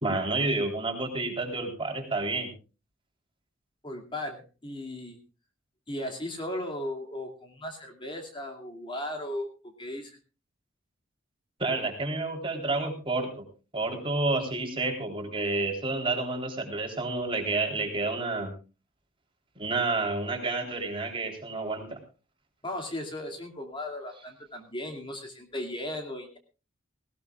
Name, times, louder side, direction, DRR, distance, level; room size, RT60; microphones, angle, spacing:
voice 1, 0.0-2.5 11.6-13.4 13.7-18.5 19.6-22.0, right 3 dB, 25° right, 3 dB, 3.7 m, -29 dB
voice 2, 3.8-5.2 5.9-9.5 9.8-10.2 22.6-26.4, left 1 dB, 25° left, 3 dB, 2.5 m, -36 dB
19.0 x 18.0 x 2.4 m, 0.32 s
head